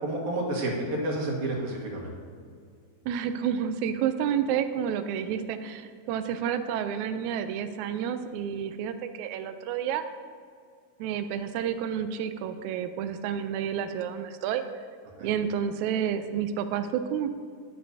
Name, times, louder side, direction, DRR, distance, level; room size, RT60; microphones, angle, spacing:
voice 1, 0.0-2.1 15.2-15.3, right 1 dB, 60° right, -1 dB, 2.8 m, -30 dB
voice 2, 3.0-10.0 11.0-14.6 15.2-17.3, right 8 dB, 90° right, 9 dB, 1.6 m, -30 dB
13.5 x 9.7 x 2.7 m, 2.1 s
omnidirectional pair, 3.9 m